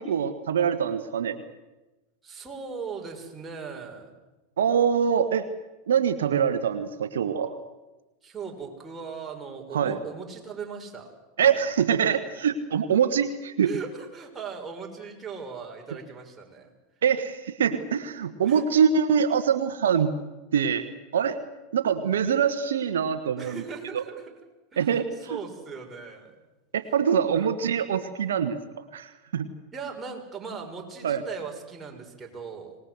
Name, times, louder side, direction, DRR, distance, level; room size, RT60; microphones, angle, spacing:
voice 1, 0.0-1.4 4.6-5.5 5.9-7.6 9.7-10.0 11.4-13.7 17.0-20.1 20.5-20.8 21.1-21.4 21.7-23.6 23.9-24.0 24.8-25.0 25.3-25.4 26.7-28.6 28.9-29.5 31.0-31.2, right 7 dB, 80° right, 9 dB, 1.3 m, -24 dB
voice 2, 2.2-4.1 8.2-11.1 13.6-16.7 18.4-18.8 23.4-24.3 24.7-26.3 27.3-27.5 29.7-32.8, right 5 dB, 20° right, 0 dB, 6.1 m, -39 dB
26.0 x 20.0 x 8.0 m, 1.1 s
hypercardioid pair, 95°, 0 cm